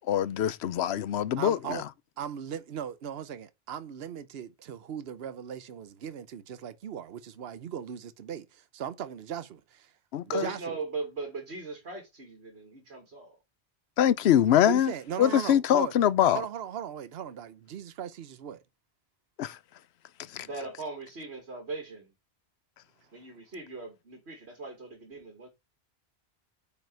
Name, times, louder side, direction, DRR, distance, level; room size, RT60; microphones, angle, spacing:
voice 1, 0.0-1.8 10.1-10.5 14.0-14.9 15.2-16.4 19.4-19.6 20.3-20.5, left 10 dB, 80° left, 0.9 m, -24 dB
voice 2, 1.4-1.8 2.2-9.9 10.4-10.8 14.7-15.9 16.3-18.6, right 9 dB, 70° right, 1.0 m, -38 dB
voice 3, 10.3-13.4 20.4-22.1 23.1-25.5, right 4 dB, 90° right, 2.4 m, -39 dB
9.1 x 5.3 x 4.6 m
omnidirectional pair, 1.1 m